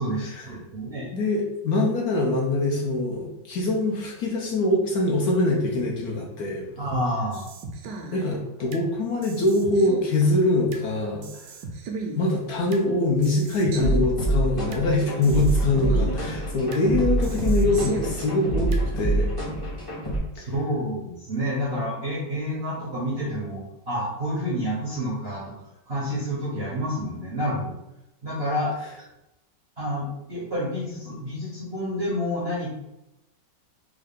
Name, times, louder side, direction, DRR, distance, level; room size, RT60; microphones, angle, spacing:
voice 1, 0.0-1.1 6.8-7.4 20.3-25.6 25.9-27.7 28.2-28.7 29.8-32.7, equal, 50° right, -6 dB, 0.7 m, -29 dB
voice 2, 1.1-6.7 8.1-11.6 12.2-19.3 20.3-20.4, left 2 dB, 70° left, -2 dB, 1.0 m, -24 dB
sound 1, 7.3-8.9 9.2-10.9 11.2-12.9 13.2-14.9 15.2-16.9 17.2-18.9, right 4 dB, 75° right, 1.1 m, -36 dB
sound 2, 13.8-20.2, right 1 dB, 25° left, 0.5 m, -26 dB
3.6 x 2.1 x 3.5 m, 0.89 s
omnidirectional pair, 2.0 m